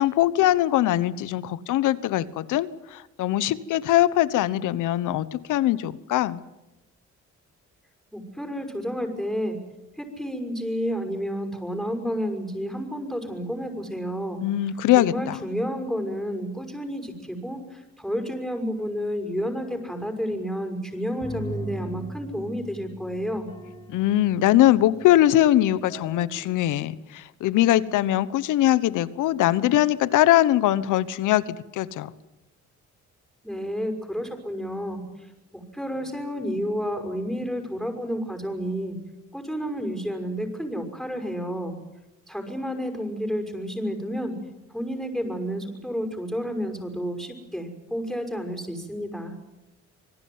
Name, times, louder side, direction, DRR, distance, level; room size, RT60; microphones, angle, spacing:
voice 1, 0.0-6.4 14.4-15.4 23.9-32.1, left 14 dB, 85° left, 17 dB, 1.2 m, -22 dB
voice 2, 8.1-9.6 10.0-14.4 15.0-23.5 33.4-35.0 35.5-39.0 39.3-41.7 42.3-44.4 44.7-49.3, equal, ahead, 4 dB, 6.1 m, -30 dB
sound 1, 21.2-25.3 25.9-26.5, right 1 dB, 15° left, 3.3 m, -39 dB
26.5 x 18.5 x 9.6 m, 0.98 s
cardioid pair, 90°, 30 cm